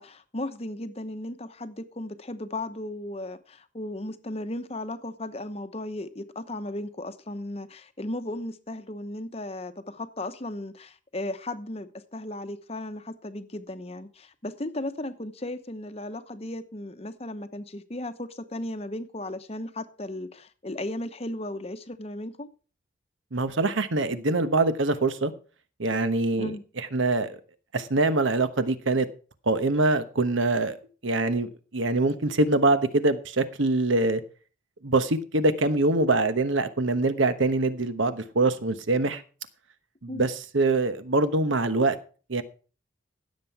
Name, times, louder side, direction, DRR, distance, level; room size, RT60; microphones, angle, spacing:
voice 1, 0.0-22.5 26.4-26.6 40.1-40.3, left 1 dB, 30° left, 0.9 m, -36 dB
voice 2, 23.3-25.3 25.8-27.4 27.7-29.1 29.5-30.8 31.0-34.2 34.8-39.2 40.0-42.0 42.3-42.4, right 2 dB, 75° right, 1.1 m, -24 dB
16.0 x 7.6 x 4.7 m
head